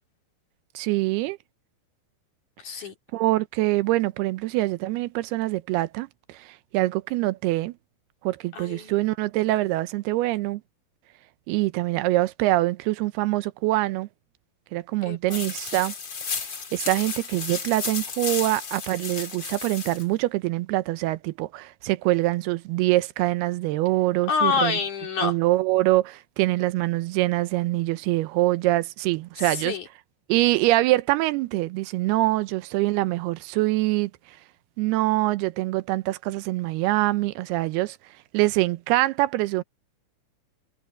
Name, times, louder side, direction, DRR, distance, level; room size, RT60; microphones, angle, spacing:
voice 1, 0.8-1.4 3.1-7.7 8.2-10.6 11.5-14.1 14.7-15.9 16.7-24.8 25.2-29.7 30.3-34.4 34.8-38.0 38.3-39.6, right 18 dB, 85° right, 2.7 m, -24 dB
voice 2, 2.6-2.9 8.5-8.9 15.0-15.4 24.3-25.4 29.4-29.9, left 5 dB, 55° left, 5.3 m, -27 dB
sound 1, 15.3-20.0, left 5 dB, 35° left, 2.2 m, -33 dB
omnidirectional pair, 4.5 m